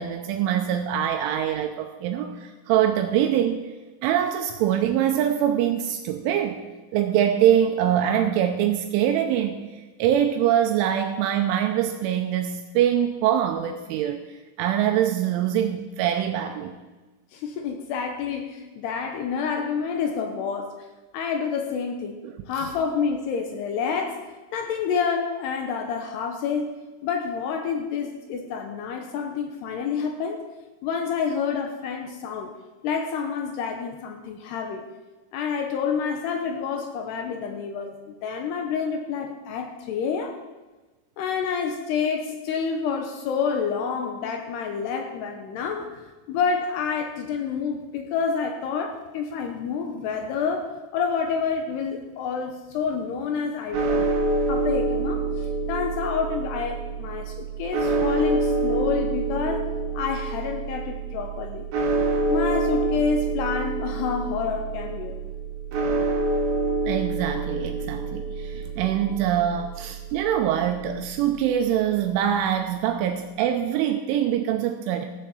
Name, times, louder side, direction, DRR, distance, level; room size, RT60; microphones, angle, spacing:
voice 1, 0.0-3.6 4.0-6.6 6.9-9.7 10.0-14.2 14.6-16.8 22.2-22.3 22.6-22.7 66.9-75.0, right 10 dB, 85° right, 5 dB, 3.1 m, -24 dB
voice 2, 17.3-20.8 21.1-24.2 24.5-26.7 27.0-30.4 30.8-32.5 32.8-34.9 35.3-40.4 41.2-46.0 46.3-54.1 54.5-59.7 59.9-61.7 62.3-65.1, left 6 dB, 75° left, 4 dB, 2.6 m, -28 dB
sound 1, 53.7-72.0, right 2 dB, 50° right, 2.6 m, -27 dB
15.0 x 7.3 x 7.2 m, 1.2 s
omnidirectional pair, 5.8 m